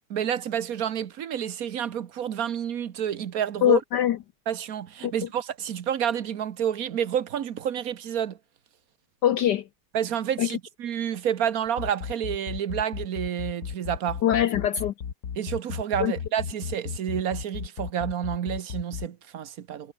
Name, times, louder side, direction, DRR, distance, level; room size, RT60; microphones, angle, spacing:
voice 1, 0.1-3.8 4.5-8.4 9.9-14.2 15.4-19.9, right 9 dB, 55° right, 1.2 m, -29 dB
voice 2, 3.6-4.2 5.0-5.1 9.2-9.6 10.4-10.6 14.2-14.9 16.0-16.1, left 11 dB, 65° left, 1.2 m, -22 dB
sound 1, 11.7-19.1, left 7 dB, 50° left, 2.0 m, -34 dB
omnidirectional pair, 2.3 m